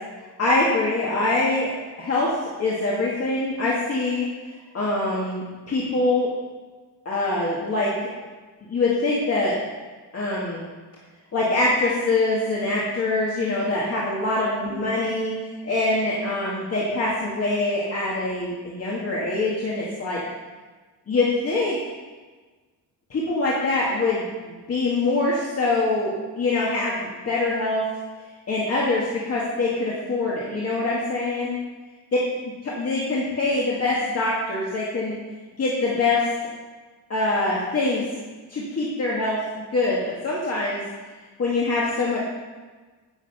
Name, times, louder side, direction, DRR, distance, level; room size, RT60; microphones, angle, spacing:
voice 1, 0.4-1.7 2.0-2.3 2.6-4.3 4.7-6.3 7.1-8.1 8.7-9.6 10.1-10.6 11.3-15.3 15.6-20.2 21.1-21.8 23.1-27.8 28.5-31.6 32.7-35.2 35.6-36.2 37.1-38.0 38.5-40.8 41.4-42.2, left 2 dB, 35° left, -5 dB, 2.0 m, -24 dB
16.0 x 6.9 x 5.6 m, 1.3 s
cardioid pair, 170°, 41 cm